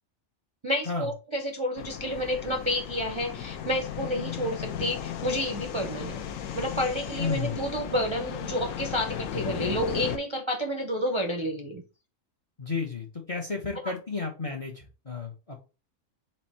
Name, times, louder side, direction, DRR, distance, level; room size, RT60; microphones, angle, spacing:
voice 1, 0.6-6.2 6.5-11.8 13.8-13.9, equal, 40° right, 0.4 m, -30 dB
sound 1, 1.8-10.2, left 8 dB, 75° left, 1.0 m, -35 dB
voice 2, 7.2-7.6 12.6-15.6, left 4 dB, 40° left, 0.5 m, -32 dB
4.3 x 2.6 x 4.1 m
omnidirectional pair, 1.4 m